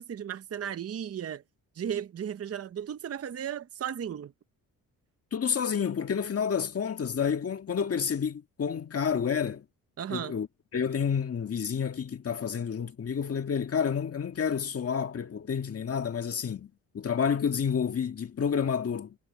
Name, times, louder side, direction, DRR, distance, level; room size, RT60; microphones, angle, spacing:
voice 1, 0.0-1.4 1.8-4.3 10.0-10.4, right 9 dB, 40° right, 0.8 m, -35 dB
voice 2, 5.3-9.6 10.1-10.5 10.7-19.2, left 7 dB, 40° left, 1.8 m, -29 dB
cardioid pair, 105°, 37 cm